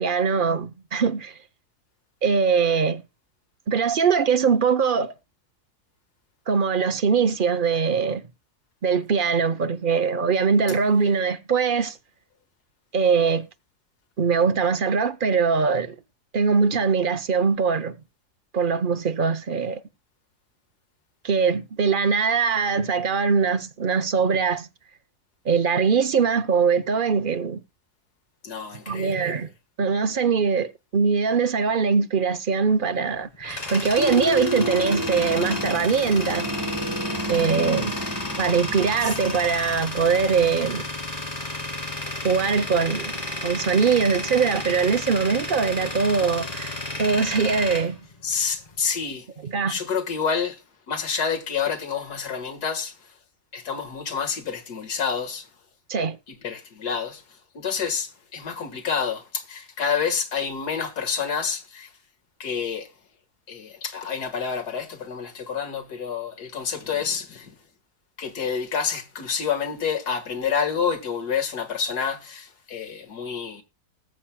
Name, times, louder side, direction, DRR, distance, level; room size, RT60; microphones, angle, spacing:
voice 1, 0.0-1.4 2.2-3.0 3.7-5.1 6.5-8.2 8.8-12.0 12.9-13.5 14.2-16.0 16.3-18.0 18.5-19.8 21.2-24.7 25.4-27.6 28.9-29.5 29.8-36.6 37.3-37.9 38.4-40.9 42.2-43.1 43.4-48.1 49.4-49.8 55.9-56.2, right 5 dB, 45° right, 0.7 m, -22 dB
voice 2, 28.4-29.3 42.1-42.3 48.2-49.3 49.7-50.6 50.9-52.9 53.5-55.5 56.3-57.2 57.5-61.9 62.4-62.9 63.5-67.5 68.2-73.6, left 6 dB, 85° left, 2.1 m, -28 dB
Tools, 33.0-48.8, left 2 dB, 25° left, 2.2 m, -32 dB
sound 1, 34.0-40.6, equal, 15° right, 1.3 m, -31 dB
19.5 x 7.3 x 2.2 m
omnidirectional pair, 1.7 m